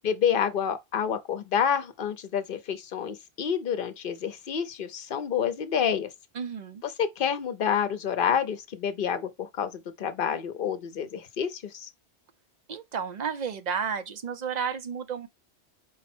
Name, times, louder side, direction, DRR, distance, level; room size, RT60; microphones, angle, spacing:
voice 1, 0.0-6.1 6.8-11.9, left 8 dB, 55° left, 0.8 m, -28 dB
voice 2, 6.3-6.8 12.7-15.3, right 7 dB, 50° right, 0.6 m, -32 dB
4.8 x 2.1 x 4.2 m
omnidirectional pair, 1.1 m